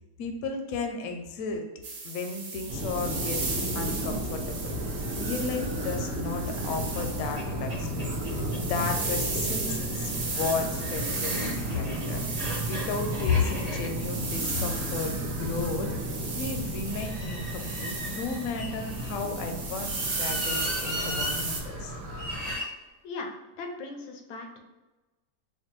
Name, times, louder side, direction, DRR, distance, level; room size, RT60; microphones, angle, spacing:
voice 1, 0.2-1.7 2.0-3.4 3.7-4.7 5.2-12.2 12.6-21.9, left 4 dB, 70° left, 5 dB, 0.9 m, -33 dB
sound 1, 1.8-21.6, right 3 dB, 60° right, 1.2 m, -36 dB
sound 2, 2.7-22.6, right 1 dB, 90° right, 1.3 m, -34 dB
sound 3, 6.9-7.0 7.4-7.5 7.7-8.6 9.5-15.7 16.9-19.1 19.8-21.4 22.1-22.7, equal, 35° right, 0.6 m, -38 dB
voice 2, 23.0-24.6, left 3 dB, 85° left, 3 dB, 1.2 m, -38 dB
4.3 x 2.2 x 3.0 m, 1.1 s
omnidirectional pair, 1.8 m